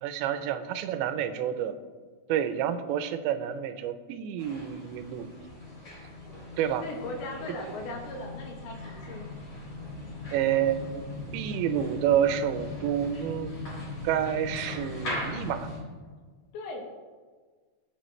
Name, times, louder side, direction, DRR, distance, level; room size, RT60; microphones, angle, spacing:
voice 1, 0.0-1.8 2.3-5.3 6.6-6.8 10.3-11.0 11.3-13.5 14.0-15.7, right 10 dB, 85° right, 10 dB, 3.0 m, -29 dB
sound 1, 4.4-15.8, left 2 dB, 30° left, 4.8 m, -39 dB
voice 2, 6.8-9.3 9.9-10.0 16.5-16.9, left 2 dB, 80° left, 0 dB, 4.2 m, -38 dB
23.0 x 8.1 x 3.2 m, 1.5 s
omnidirectional pair, 5.1 m